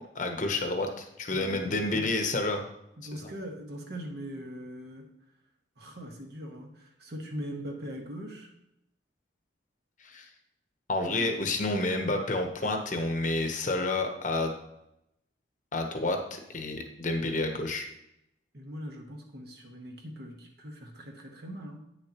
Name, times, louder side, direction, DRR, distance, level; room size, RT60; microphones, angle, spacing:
voice 1, 0.1-2.6 3.1-3.3 10.0-10.3 10.9-14.5 15.7-17.9, left 2 dB, 40° left, 4 dB, 0.9 m, -29 dB
voice 2, 1.3-2.1 3.0-5.1 5.8-8.5 11.1-11.4 18.5-21.8, equal, 55° right, 2 dB, 1.3 m, -41 dB
9.1 x 6.7 x 2.9 m, 0.83 s
head